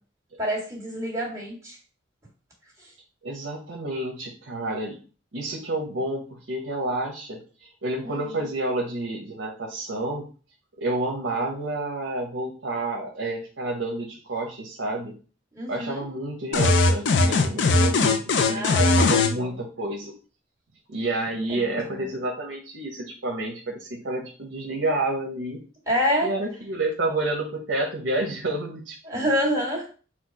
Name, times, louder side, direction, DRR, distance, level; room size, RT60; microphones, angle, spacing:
voice 1, 0.4-1.8 2.8-2.9 8.0-8.5 15.5-16.0 18.4-19.5 21.5-22.1 25.9-26.3 29.0-29.9, equal, 15° right, -5 dB, 2.0 m, -28 dB
voice 2, 3.2-5.0 5.3-10.3 10.8-15.1 15.7-20.1 20.9-25.6 26.2-29.3, right 2 dB, 75° right, 1 dB, 0.8 m, -29 dB
sound 1, 16.5-19.3, left 3 dB, 70° left, 0.5 m, -19 dB
4.4 x 2.4 x 4.6 m, 0.38 s
head